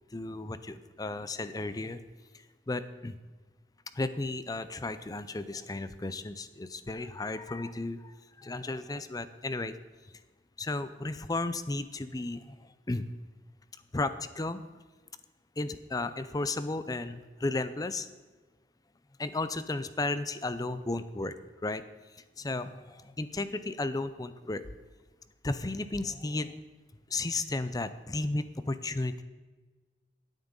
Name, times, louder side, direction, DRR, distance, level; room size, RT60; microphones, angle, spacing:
voice 1, 0.1-2.0 2.7-3.2 3.9-9.8 10.6-13.1 13.9-14.6 15.6-18.1 19.2-21.3 21.6-21.8 22.1-24.6 25.4-26.6 27.1-29.2, left 2 dB, 20° left, 13 dB, 0.5 m, -34 dB
17.0 x 9.1 x 3.9 m, 1.3 s
head